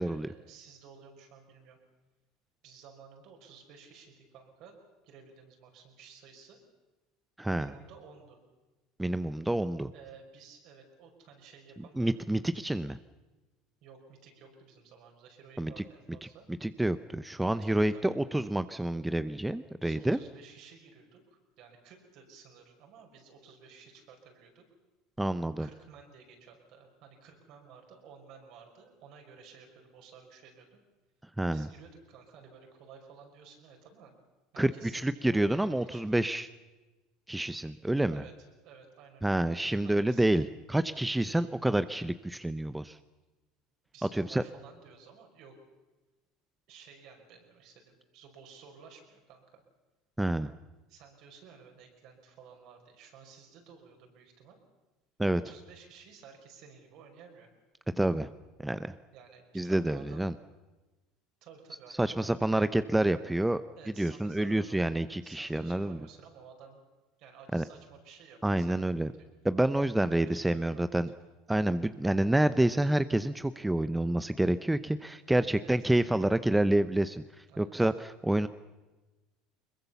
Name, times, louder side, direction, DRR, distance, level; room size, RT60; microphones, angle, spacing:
voice 1, 0.0-1.8 2.6-4.8 5.0-6.6 7.5-8.4 9.9-12.2 13.8-16.5 17.6-18.0 19.7-24.6 25.6-30.8 31.5-34.1 34.5-36.1 38.1-38.3 38.6-39.5 39.8-40.3 43.9-45.6 46.7-49.6 50.9-54.6 55.3-57.5 59.1-60.3 61.4-62.3 63.8-66.8 67.2-69.3 70.1-71.2 75.3-75.7 77.5-77.9, right 6 dB, 60° right, 3 dB, 5.4 m, -54 dB
voice 2, 7.4-7.7 9.0-9.9 12.0-13.0 15.6-15.8 16.6-20.2 25.2-25.7 31.4-31.7 34.6-36.5 37.3-38.2 39.2-43.0 44.1-44.4 50.2-50.5 55.2-55.4 58.0-58.3 58.6-58.9 59.5-60.3 62.0-63.6 64.0-66.0 67.5-67.6 68.4-69.1 69.4-71.1 71.5-78.5, right 1 dB, 5° right, 12 dB, 0.7 m, -28 dB
22.0 x 21.5 x 7.0 m, 1.2 s
supercardioid pair, 95°, 0 cm